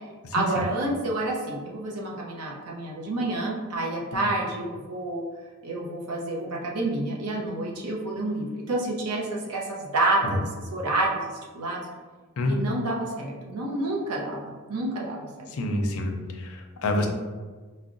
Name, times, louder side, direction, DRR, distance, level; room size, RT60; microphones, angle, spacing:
voice 1, 0.3-5.2 5.6-11.8 12.5-15.3 16.8-17.1, right 2 dB, 85° right, -2 dB, 0.6 m, -29 dB
voice 2, 15.5-17.1, left 1 dB, 65° left, 3 dB, 0.4 m, -28 dB
4.6 x 2.1 x 2.5 m, 1.4 s
head